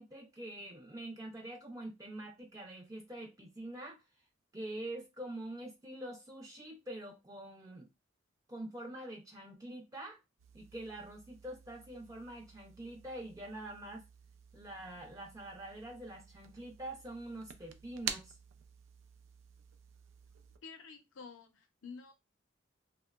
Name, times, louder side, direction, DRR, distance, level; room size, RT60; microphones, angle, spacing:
voice 1, 0.0-4.0 4.5-7.9 8.5-10.2 10.5-14.0 14.5-18.3, right 1 dB, 20° right, 0.4 m, -45 dB
sound 1, 10.4-20.6, right 8 dB, 85° right, 0.4 m, -49 dB
voice 2, 20.6-22.1, left 5 dB, 85° left, 0.6 m, -50 dB
2.8 x 2.1 x 2.2 m
head